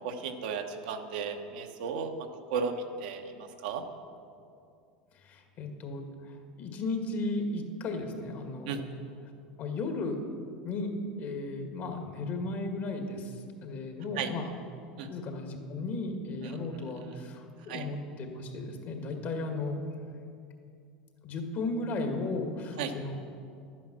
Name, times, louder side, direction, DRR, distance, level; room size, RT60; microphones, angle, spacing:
voice 1, 0.0-2.1 2.5-3.8 8.6-8.8 14.2-14.3 15.0-15.1 16.4-16.6 17.0-17.2 17.7-17.8 22.8-22.9, right 6 dB, 75° right, 4 dB, 1.1 m, -35 dB
voice 2, 5.2-8.9 9.6-10.2 10.6-10.9 11.2-14.5 15.1-19.8 21.2-23.1, left 3 dB, 50° left, 4 dB, 1.9 m, -35 dB
11.5 x 9.2 x 6.1 m, 2.4 s
hypercardioid pair, 95°, 4 cm